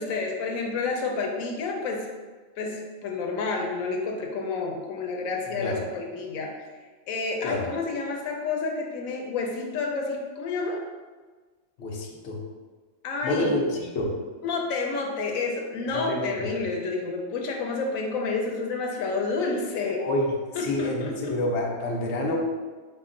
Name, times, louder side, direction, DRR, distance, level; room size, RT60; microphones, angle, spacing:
voice 1, 0.0-2.1 2.6-6.5 7.1-10.8 13.0-13.6 14.4-20.0 20.6-21.3, left 4 dB, 90° left, 1 dB, 1.0 m, -29 dB
voice 2, 11.8-12.4 13.2-14.2 15.9-16.4 20.0-20.3 20.6-22.4, left 1 dB, 65° left, -1 dB, 0.9 m, -28 dB
4.9 x 2.1 x 3.8 m, 1.4 s
omnidirectional pair, 1.4 m